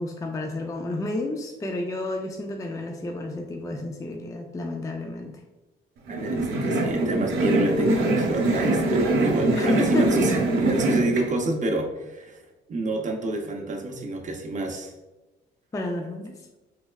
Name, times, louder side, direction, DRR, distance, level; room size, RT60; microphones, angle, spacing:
voice 1, 0.0-5.4 9.5-10.1 15.7-16.4, left 2 dB, 15° left, 2 dB, 0.4 m, -31 dB
voice 2, 6.1-12.4 12.7-14.9, right 2 dB, 40° right, 2 dB, 0.6 m, -28 dB
sound 1, 6.1-11.2, right 2 dB, 80° right, 0.9 m, -23 dB
3.4 x 3.2 x 2.3 m, 1.1 s
cardioid pair, 90°, 20 cm